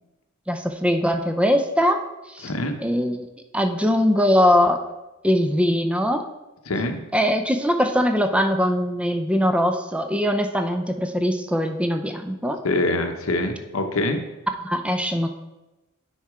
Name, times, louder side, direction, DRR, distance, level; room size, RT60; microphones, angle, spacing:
voice 1, 0.5-2.0 2.3-2.5 2.8-3.3 3.5-4.8 5.2-6.2 7.1-12.6 14.6-15.3, equal, 5° right, 6 dB, 0.5 m, -21 dB
voice 2, 2.4-2.8 6.7-7.0 12.6-14.2, left 2 dB, 90° left, 6 dB, 0.9 m, -24 dB
9.3 x 4.3 x 4.8 m, 1.0 s
head